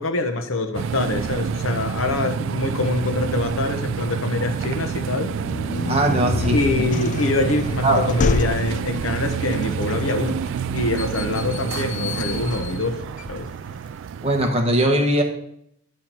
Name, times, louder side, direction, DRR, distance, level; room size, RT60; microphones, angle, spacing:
voice 1, 0.0-5.4 6.5-10.4 10.7-13.0 13.3-13.5, left 2 dB, 75° left, 6 dB, 1.0 m, -25 dB
sound 1, 0.7-14.5, right 7 dB, 65° right, 0.3 m, -28 dB
sound 2, 5.3-14.0, left 4 dB, 40° left, 0.4 m, -30 dB
voice 2, 5.9-6.6 7.8-8.2 14.2-15.2, right 1 dB, 30° right, 3 dB, 1.2 m, -20 dB
9.8 x 5.7 x 4.5 m, 0.72 s
head